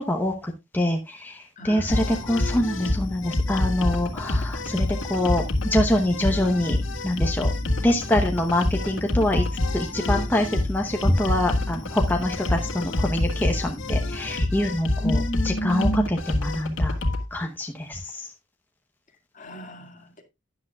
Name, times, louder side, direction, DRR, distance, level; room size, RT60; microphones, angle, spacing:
voice 1, 0.0-7.5 7.8-9.4 9.7-15.2 15.4-17.0 17.3-18.3, left 1 dB, 10° left, 0.9 m, -25 dB
voice 2, 1.6-2.2 15.0-16.1 19.4-20.2, equal, 40° left, 2.1 m, -31 dB
sound 1, 1.9-17.2, left 1 dB, 85° left, 1.8 m, -26 dB
12.5 x 10.0 x 2.4 m
head